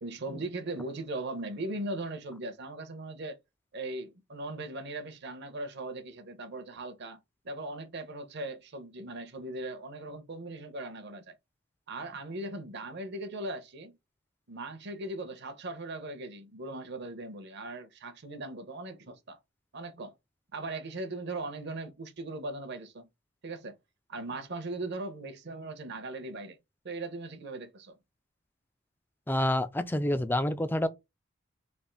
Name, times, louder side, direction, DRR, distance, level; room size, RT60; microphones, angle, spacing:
voice 1, 0.0-3.4 3.7-7.2 7.4-11.4 11.9-14.0 14.5-19.4 19.7-20.1 20.5-23.1 23.4-23.7 24.1-26.6 26.8-28.0, right 2 dB, 55° right, 0.8 m, -39 dB
voice 2, 29.3-30.9, left 1 dB, 10° left, 0.3 m, -28 dB
3.4 x 2.5 x 3.8 m
head